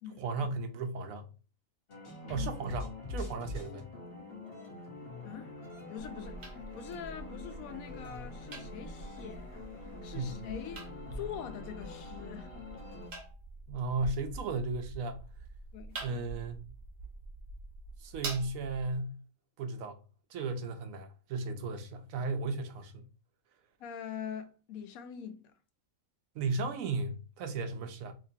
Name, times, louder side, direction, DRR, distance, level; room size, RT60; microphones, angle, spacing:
voice 1, 0.2-1.3 2.3-3.9 10.1-10.4 13.7-15.2 16.0-16.6 18.0-19.2 19.6-20.0 20.3-23.0 26.3-28.1, right 3 dB, 75° right, 1.0 m, -35 dB
sound 1, 1.9-13.1, left 3 dB, 45° left, 1.1 m, -45 dB
voice 2, 5.2-5.5 5.9-9.7 10.0-12.5 15.7-16.0 23.8-25.5, left 8 dB, 85° left, 1.0 m, -44 dB
sound 2, 6.0-19.0, right 2 dB, 55° right, 1.1 m, -46 dB
3.5 x 2.9 x 2.7 m
omnidirectional pair, 1.4 m